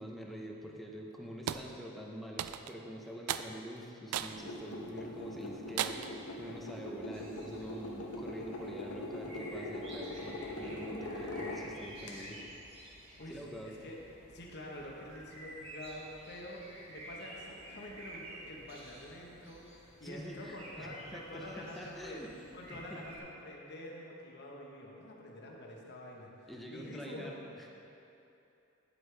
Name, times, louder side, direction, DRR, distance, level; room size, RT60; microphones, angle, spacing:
voice 1, 0.0-12.5 13.3-13.7 20.0-22.3 22.7-23.0 26.5-27.8, equal, ahead, -1 dB, 0.7 m, -46 dB
sound 1, 1.5-1.7 2.4-2.8 3.3-3.5 4.1-4.4 4.9-5.0 5.8-6.2, right 10 dB, 80° right, 0.3 m, -35 dB
sound 2, 4.3-12.1, left 1 dB, 80° left, 1.0 m, -42 dB
sound 3, 7.1-23.2, right 1 dB, 30° right, 1.5 m, -51 dB
voice 2, 13.2-14.0 14.3-22.2 22.5-27.4, left 1 dB, 50° left, -1 dB, 1.1 m, -47 dB
9.9 x 7.9 x 3.3 m, 2.8 s
head